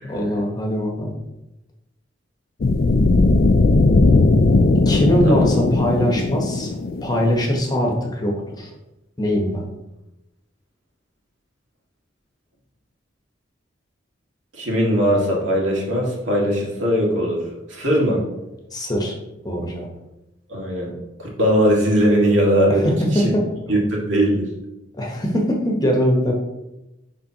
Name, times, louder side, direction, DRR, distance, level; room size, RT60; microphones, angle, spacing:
voice 1, 0.1-1.2 4.8-6.7 7.0-8.7 9.2-9.6 18.7-19.2 19.4-19.9 22.7-23.4 25.0-26.3, equal, 20° left, 0 dB, 1.0 m, -21 dB
sound 1, 2.6-7.5, left 3 dB, 50° left, 0.4 m, -17 dB
voice 2, 14.5-17.4 17.7-18.2 20.5-20.9 21.2-22.9 23.7-23.8 24.1-24.5, equal, 90° right, -3 dB, 1.9 m, -19 dB
10.0 x 3.6 x 2.9 m, 0.96 s
head